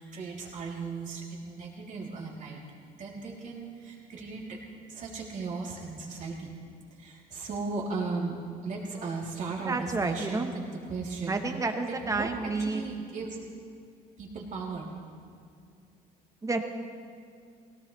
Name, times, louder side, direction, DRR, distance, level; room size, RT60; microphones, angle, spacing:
voice 1, 0.0-2.6 3.0-4.6 4.9-6.5 6.9-11.4 11.9-13.4 14.2-14.9, right 4 dB, 50° right, -3 dB, 3.4 m, -36 dB
voice 2, 9.7-10.5 11.3-12.8 16.4-16.6, right 3 dB, 20° right, 5 dB, 1.3 m, -30 dB
19.0 x 17.5 x 3.4 m, 2.3 s
cardioid pair, 110°, 17 cm